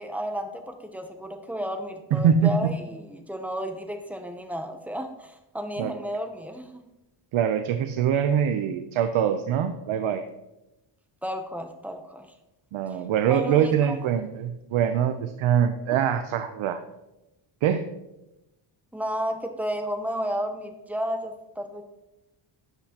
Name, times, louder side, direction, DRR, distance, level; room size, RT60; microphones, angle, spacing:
voice 1, 0.0-6.8 11.2-12.3 13.3-14.0 18.9-21.8, equal, 5° right, 4 dB, 0.7 m, -32 dB
voice 2, 2.1-2.7 5.8-5.9 7.3-10.2 12.7-16.8 17.6-17.8, right 8 dB, 75° right, 8 dB, 0.7 m, -23 dB
12.5 x 7.9 x 2.9 m, 0.95 s
wide cardioid pair, 170°, 49 cm